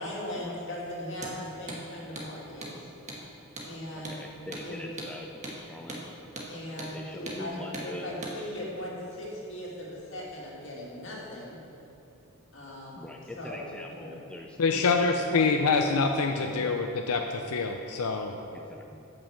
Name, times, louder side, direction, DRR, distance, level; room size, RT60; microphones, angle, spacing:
voice 1, 0.0-2.9 3.6-4.2 4.6-4.8 6.5-11.6 12.5-14.2, left 1 dB, 55° left, -4 dB, 2.2 m, -39 dB
Hammer, 1.1-1.4 1.7-1.8 2.1-2.3 2.6-2.8 3.1-3.2 3.6-3.7 4.0-4.2 4.5-4.7 5.0-5.1 5.4-5.6 5.9-6.0 6.4-6.5 6.8-6.9 7.3-7.4 7.7-7.9 8.2-8.4, right 2 dB, 35° right, 1.3 m, -39 dB
voice 2, 3.9-6.1 6.9-8.7 12.9-16.0 16.6-16.8 18.5-19.1, left 1 dB, 5° left, 1 dB, 0.3 m, -44 dB
voice 3, 14.6-18.4, left 4 dB, 85° left, 4 dB, 0.5 m, -26 dB
8.9 x 5.5 x 7.1 m, 2.8 s
head